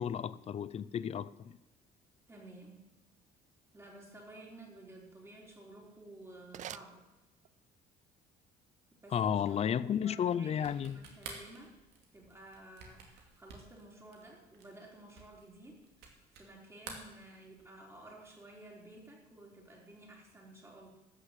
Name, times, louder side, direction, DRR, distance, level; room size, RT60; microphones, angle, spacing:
voice 1, 0.0-1.5 9.1-11.0, left 8 dB, 40° left, 0.5 m, -33 dB
voice 2, 2.3-2.8 3.7-7.0 8.9-11.7 12.1-20.9, right 1 dB, 15° right, 3.8 m, -53 dB
sound 1, 5.8-7.7, right 11 dB, 45° right, 0.4 m, -50 dB
sound 2, 10.5-16.5 16.8-17.8, right 5 dB, 80° right, 2.6 m, -51 dB
13.0 x 6.4 x 8.1 m
cardioid pair, 110°, 17 cm